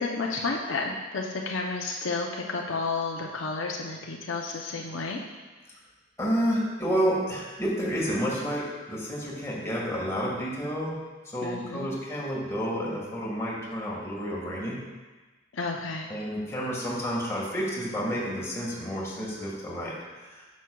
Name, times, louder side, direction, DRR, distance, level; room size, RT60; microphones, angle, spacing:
voice 1, 0.0-5.2 11.4-11.9 15.5-16.1, left 3 dB, 75° left, 0 dB, 0.6 m, -31 dB
voice 2, 6.2-11.0 11.3-14.8 16.1-19.9 20.3-20.4, equal, 15° left, -5 dB, 1.6 m, -30 dB
9.2 x 6.3 x 2.3 m, 1.3 s
head